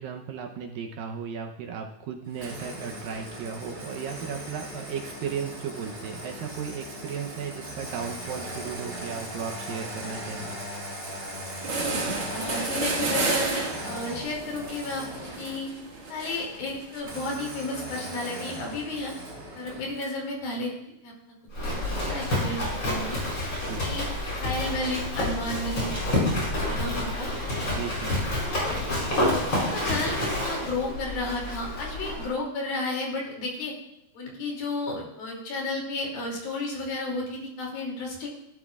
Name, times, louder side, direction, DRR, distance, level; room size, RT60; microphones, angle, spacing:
voice 1, 0.0-10.6 23.7-23.9 27.8-28.1, right 7 dB, 75° right, 3 dB, 2.4 m, -35 dB
Engine starting, 2.3-15.7 17.0-20.2, right 1 dB, 25° right, 4.5 m, -39 dB
sound 1, 11.2-11.3 11.5-17.0, right 3 dB, 45° right, 2.3 m, -31 dB
voice 2, 12.3-15.7 16.1-19.1 19.5-21.1 21.6-23.2 23.8-24.1 24.4-25.9 26.5-27.3 28.4-28.8 29.2-33.7 34.1-38.3, left 2 dB, 70° left, -2 dB, 4.5 m, -33 dB
Livestock farm animals working animals, 21.5-32.3, left 1 dB, 30° left, 5.5 m, -28 dB
16.5 x 12.5 x 2.4 m, 0.82 s
omnidirectional pair, 4.4 m